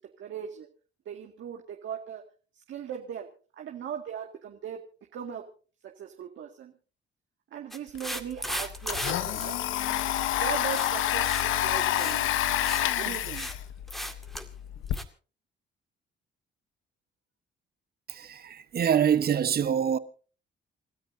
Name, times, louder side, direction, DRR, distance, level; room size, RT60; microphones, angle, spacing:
voice 1, 0.2-0.7 1.1-2.2 2.5-3.3 3.6-4.8 5.1-5.5 5.8-6.7 7.5-9.6 10.3-12.3 12.9-13.5, right 9 dB, 70° right, 2.1 m, -39 dB
sound 1, 7.7-9.1 9.4-9.5 10.7-11.0 11.2-11.5 11.7-12.2 12.5-12.9 13.1-13.5 13.9-14.5 14.9-15.0, equal, ahead, 2.1 m, -36 dB
Domestic sounds home sounds, 7.9-8.0 8.3-15.0, left 12 dB, 90° left, 1.1 m, -28 dB
voice 2, 18.1-20.0, right 8 dB, 50° right, 1.2 m, -25 dB
29.0 x 13.0 x 2.7 m
cardioid pair, 90°, 20 cm